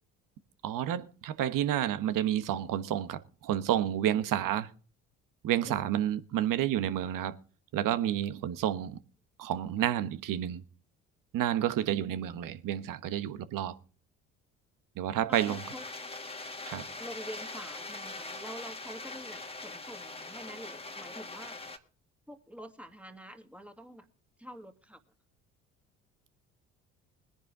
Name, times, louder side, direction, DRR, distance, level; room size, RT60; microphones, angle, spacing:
voice 1, 0.6-4.7 5.4-7.4 7.7-9.0 9.4-10.6 11.3-13.8 15.0-15.6 16.7-16.9, right 11 dB, 60° right, 1.3 m, -30 dB
sound 1, 15.3-21.8, left 3 dB, 15° left, 1.8 m, -42 dB
voice 2, 15.3-15.9 17.0-21.6 22.3-24.1 24.4-25.0, equal, 5° right, 2.3 m, -47 dB
21.0 x 10.5 x 3.8 m
hypercardioid pair, 55°, 37 cm